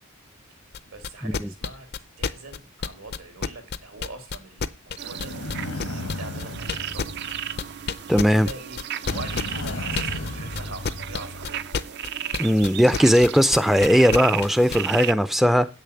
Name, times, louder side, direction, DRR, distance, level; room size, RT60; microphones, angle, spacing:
sound 1, 0.7-14.8, left 5 dB, 50° left, 0.5 m, -29 dB
voice 1, 0.8-7.2 7.6-11.6, right 3 dB, 85° right, 2.9 m, -42 dB
sound 2, 5.0-8.1 9.0-11.7, left 2 dB, 85° left, 1.4 m, -35 dB
sound 3, 5.0-15.1, right 10 dB, 50° right, 0.5 m, -34 dB
voice 2, 8.1-8.5 12.4-15.7, equal, ahead, 0.4 m, -18 dB
8.4 x 6.7 x 7.0 m
head